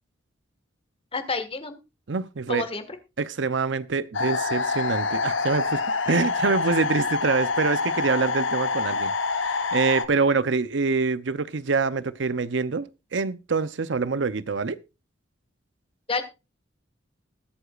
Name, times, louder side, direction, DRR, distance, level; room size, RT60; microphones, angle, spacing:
voice 1, 1.1-1.8 2.5-2.9 16.1-16.2, left 3 dB, 30° left, 1.6 m, -29 dB
voice 2, 2.1-2.7 3.2-5.8 6.1-14.8, right 4 dB, 70° right, 0.7 m, -25 dB
sound 1, 4.1-10.1, left 4 dB, 85° left, 0.9 m, -26 dB
21.0 x 8.1 x 2.4 m
head